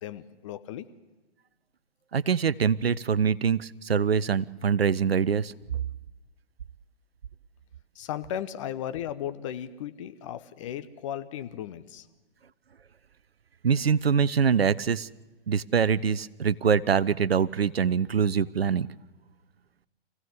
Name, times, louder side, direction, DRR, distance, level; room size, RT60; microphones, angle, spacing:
voice 1, 0.0-0.9 7.9-12.1, left 10 dB, 30° left, 11 dB, 0.9 m, -36 dB
voice 2, 2.1-5.5 13.6-15.1 15.5-18.9, right 6 dB, 70° right, 19 dB, 0.7 m, -24 dB
25.0 x 16.0 x 8.2 m, 1.2 s
figure-of-eight pair, 125°, 32 cm